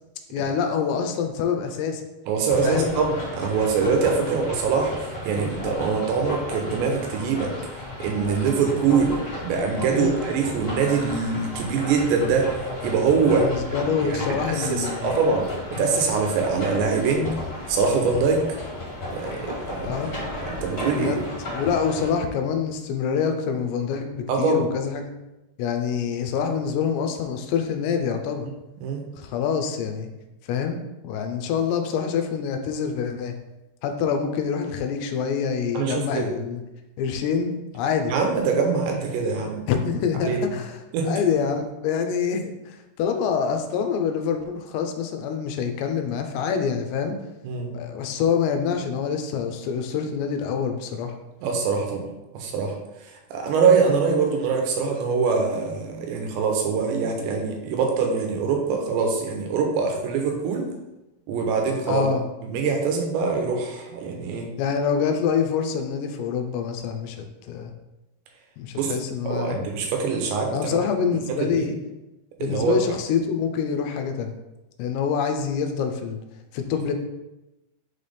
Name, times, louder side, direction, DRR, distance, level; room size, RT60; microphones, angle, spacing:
voice 1, 0.3-2.0 2.6-2.9 4.2-4.4 9.9-10.2 13.3-15.2 19.8-20.1 21.0-21.2 21.5-25.0 25.6-28.5 29.2-30.1 30.5-30.8 31.0-33.3 33.8-36.6 37.0-38.1 39.7-40.8 41.0-47.1 47.7-51.1 61.9-62.2 64.6-67.7 68.6-69.6 70.5-71.8 72.4-74.3 74.8-76.2 76.5-76.9, left 6 dB, 85° left, 5 dB, 2.8 m, -26 dB
voice 2, 2.3-7.5 8.0-9.2 9.4-12.5 12.8-13.5 14.1-15.5 15.8-17.3 17.7-18.4 19.1-20.2 20.5-21.1 24.3-24.6 28.8-29.0 35.7-36.3 38.1-39.6 40.2-40.4 40.9-41.1 47.4-47.7 51.4-52.0 52.3-52.8 53.3-60.6 61.3-62.1 62.4-64.5 68.8-68.9 69.2-70.5 71.6-71.7 72.4-72.8, right 5 dB, 85° right, 2 dB, 3.2 m, -23 dB
sound 1, 2.5-22.1, left 1 dB, 35° left, 1.8 m, -34 dB
6.8 x 4.2 x 3.4 m, 0.99 s
omnidirectional pair, 5.0 m